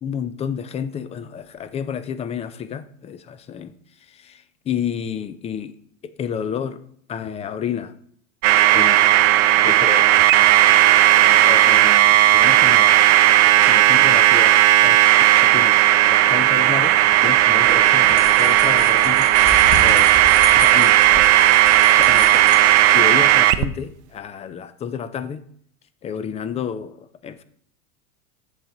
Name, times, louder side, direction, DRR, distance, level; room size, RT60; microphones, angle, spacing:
voice 1, 0.0-3.7 4.1-5.8 6.0-6.8 7.1-7.9 8.7-9.0 9.6-10.3 11.0-13.1 13.5-14.6 14.8-15.8 16.1-20.1 20.5-21.3 21.9-22.6 22.9-25.4 26.0-27.4, left 8 dB, 20° left, 13 dB, 0.3 m, -30 dB
sound 1, 8.4-23.6, right 14 dB, 60° right, 0.6 m, -14 dB
sound 2, 17.3-23.4, left 3 dB, 50° left, 3.3 m, -32 dB
6.9 x 6.4 x 3.8 m, 0.62 s
hypercardioid pair, 100°, 39 cm